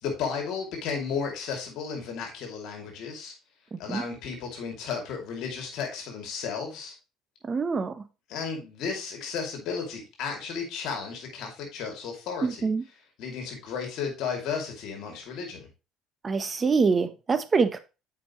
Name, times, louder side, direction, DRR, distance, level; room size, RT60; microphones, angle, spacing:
voice 1, 0.0-3.3 3.8-6.9 8.3-12.7 13.2-15.7, left 6 dB, 70° left, 2 dB, 2.5 m, -34 dB
voice 2, 3.7-4.0 7.4-8.0 12.4-12.8 16.2-17.8, right 4 dB, 30° right, 11 dB, 0.9 m, -25 dB
7.5 x 5.2 x 3.0 m, 0.29 s
supercardioid pair, 85°, 0 cm